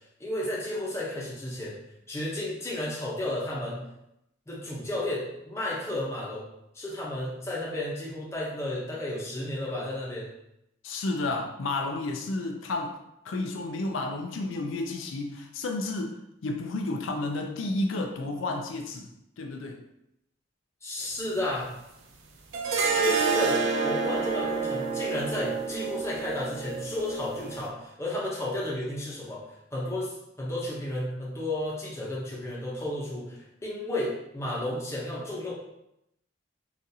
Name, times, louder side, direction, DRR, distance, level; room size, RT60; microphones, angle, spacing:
voice 1, 0.2-1.8 2.1-3.8 4.5-6.5 6.7-10.3 20.8-21.7 22.9-29.5 29.7-35.5, left 1 dB, 15° left, -5 dB, 0.7 m, -32 dB
voice 2, 10.8-13.0 13.2-19.1 19.4-19.8, left 2 dB, 75° left, 3 dB, 0.4 m, -31 dB
sound 1, 22.5-27.7, right 4 dB, 70° right, 0.5 m, -28 dB
3.9 x 2.5 x 2.7 m, 0.82 s
head